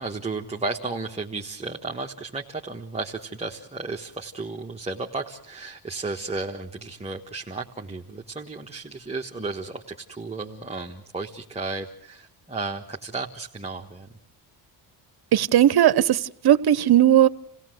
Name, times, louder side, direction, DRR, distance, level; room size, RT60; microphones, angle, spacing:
voice 1, 0.0-14.1, right 3 dB, 15° right, 0 dB, 1.5 m, -33 dB
voice 2, 15.3-17.3, right 11 dB, 55° right, 16 dB, 1.0 m, -17 dB
28.5 x 16.5 x 7.8 m, 0.71 s
cardioid pair, 90°, 46 cm